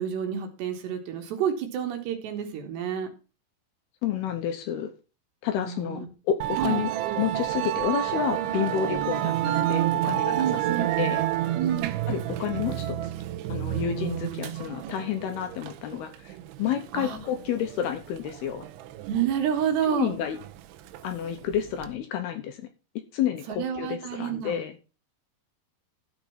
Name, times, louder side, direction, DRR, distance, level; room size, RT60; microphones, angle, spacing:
voice 1, 0.0-3.1 5.6-6.1 6.6-6.8 10.4-10.9 11.6-11.9 16.9-17.2 19.1-20.2 23.5-24.6, right 9 dB, 70° right, 5 dB, 3.5 m, -29 dB
voice 2, 4.0-4.9 5.4-6.9 7.2-11.2 12.1-13.1 13.5-18.7 19.9-20.4 21.0-22.7 23.1-24.8, left 9 dB, 75° left, 8 dB, 2.5 m, -30 dB
Musical instrument, 6.4-21.9, right 14 dB, 85° right, 3.2 m, -30 dB
13.0 x 5.3 x 5.8 m, 0.33 s
omnidirectional pair, 5.3 m